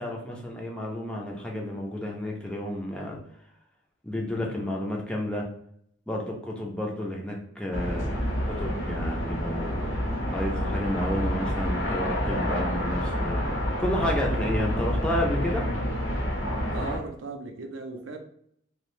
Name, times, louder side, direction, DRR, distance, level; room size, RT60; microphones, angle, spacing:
voice 1, 0.0-3.2 4.0-5.5 6.1-10.0 10.3-13.5 13.8-15.6, left 1 dB, 5° left, -1 dB, 0.4 m, -31 dB
sound 1, 7.7-17.0, equal, 70° left, 0.7 m, -28 dB
voice 2, 16.7-18.2, right 3 dB, 70° right, 4 dB, 0.4 m, -37 dB
2.6 x 2.0 x 3.0 m, 0.68 s
head